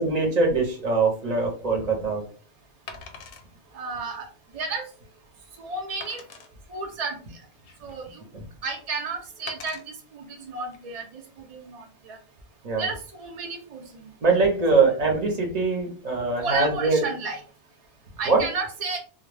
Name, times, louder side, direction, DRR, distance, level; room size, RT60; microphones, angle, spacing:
voice 1, 0.0-2.2 12.6-12.8 14.2-17.0 18.3-18.4, right 3 dB, 40° right, 2 dB, 0.7 m, -22 dB
Wood, 1.3-1.4 2.9-3.5 4.1-4.2 4.7-4.8 6.0-6.5 7.3-8.1 9.5-9.8 10.6-10.8, left 5 dB, 65° left, 0.7 m, -42 dB
voice 2, 3.7-4.3 4.5-4.9 5.6-6.2 6.7-7.4 7.8-8.2 8.6-12.2 12.8-14.1 16.4-17.4 18.2-19.0, right 4 dB, 70° right, 3 dB, 0.3 m, -32 dB
2.2 x 2.0 x 3.2 m, 0.39 s
omnidirectional pair, 1.2 m